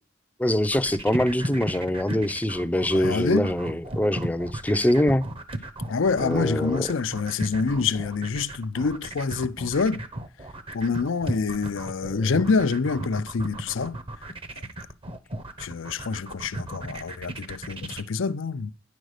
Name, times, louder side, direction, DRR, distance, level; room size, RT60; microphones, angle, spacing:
voice 1, 0.4-5.2 6.2-6.9, left 1 dB, 10° left, 0.5 m, -24 dB
sound 1, 0.6-18.0, right 1 dB, 30° right, 0.8 m, -35 dB
voice 2, 2.9-3.5 5.9-10.0 10.7-14.0 15.6-18.7, left 4 dB, 75° left, 0.5 m, -26 dB
9.9 x 5.2 x 6.5 m
head